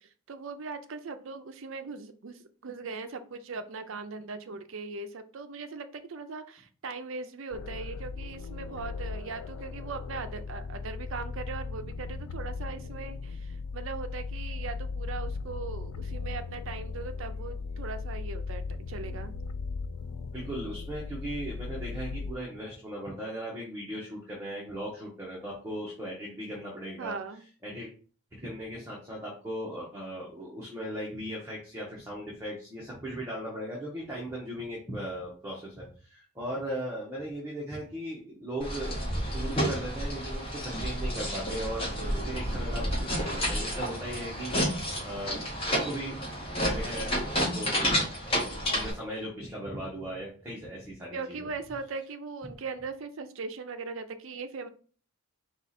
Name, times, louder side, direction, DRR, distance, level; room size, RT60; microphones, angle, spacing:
voice 1, 0.0-18.6 18.9-19.3 27.0-27.4 41.9-42.5 51.1-54.7, right 4 dB, 60° right, 9 dB, 0.5 m, -39 dB
sound 1, 7.5-22.3, left 4 dB, 80° left, 0.3 m, -37 dB
voice 2, 20.3-27.2 27.6-27.9 28.3-44.6 45.0-46.2 46.6-51.5, right 1 dB, 10° right, -5 dB, 0.9 m, -38 dB
sound 2, 38.6-48.9, equal, 25° left, 1.3 m, -30 dB
4.6 x 2.4 x 4.1 m, 0.42 s
head